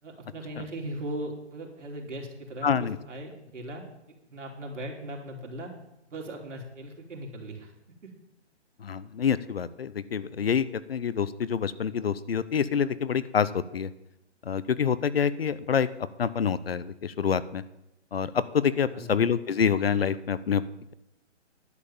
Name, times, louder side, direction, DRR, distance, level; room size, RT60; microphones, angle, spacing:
voice 1, 0.0-3.8 4.3-5.7 6.1-7.7 18.9-19.2, right 1 dB, 90° right, 1 dB, 3.1 m, -38 dB
voice 2, 2.6-3.0 8.8-13.9 14.4-15.9 16.2-17.6 18.1-20.6, left 7 dB, 55° left, 16 dB, 0.6 m, -27 dB
11.0 x 7.5 x 7.1 m, 0.88 s
hypercardioid pair, 175°, 35 cm